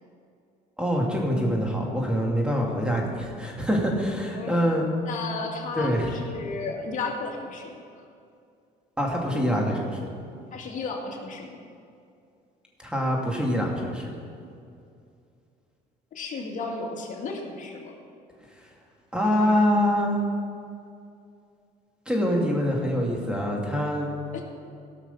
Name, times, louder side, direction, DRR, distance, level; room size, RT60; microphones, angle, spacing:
voice 1, 0.8-4.9 5.8-6.2 9.0-10.0 12.8-14.1 19.1-20.2 22.1-24.1, equal, 5° right, -1 dB, 2.3 m, -25 dB
voice 2, 5.1-7.8 10.5-11.6 16.1-17.9 24.3-24.4, left 4 dB, 50° left, 0 dB, 2.2 m, -33 dB
17.0 x 6.2 x 5.6 m, 2.4 s
cardioid pair, 110°, 17 cm